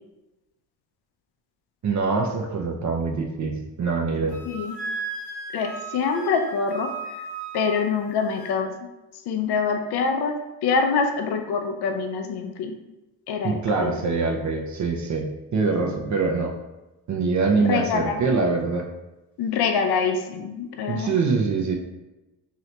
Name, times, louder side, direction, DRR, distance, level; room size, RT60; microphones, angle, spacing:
voice 1, 1.8-4.4 13.4-16.5 17.1-18.9 20.9-21.7, right 4 dB, 45° right, 1 dB, 0.6 m, -24 dB
Wind instrument woodwind instrument, 4.3-8.6, right 3 dB, 45° left, 1.1 m, -36 dB
voice 2, 4.5-4.8 5.5-6.9 7.5-8.7 9.3-10.3 10.6-12.7 13.3-13.5 13.8-13.9 17.6-18.2 19.4-21.1, left 5 dB, 65° left, 5 dB, 0.6 m, -25 dB
2.8 x 2.7 x 3.2 m, 1.0 s
supercardioid pair, 50°, 42 cm